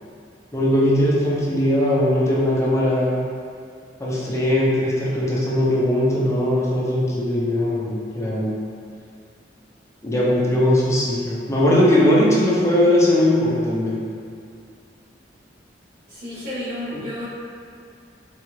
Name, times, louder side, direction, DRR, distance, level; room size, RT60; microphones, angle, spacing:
voice 1, 0.5-3.1 4.0-8.6 10.0-14.0 16.9-17.0, left 1 dB, 15° left, -6 dB, 0.6 m, -19 dB
voice 2, 16.1-17.3, left 1 dB, 70° right, -15 dB, 1.1 m, -31 dB
4.0 x 2.4 x 3.1 m, 2.3 s
head